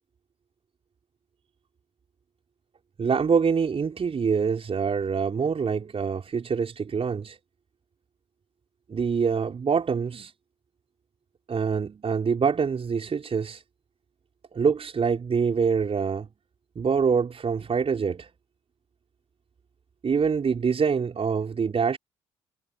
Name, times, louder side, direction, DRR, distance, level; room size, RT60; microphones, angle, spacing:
voice 1, 3.0-7.4 8.9-10.3 11.5-13.6 14.5-16.3 16.8-18.3 20.0-22.0, right 6 dB, 45° right, 5.7 m, -25 dB
hypercardioid pair, 45°, 14 cm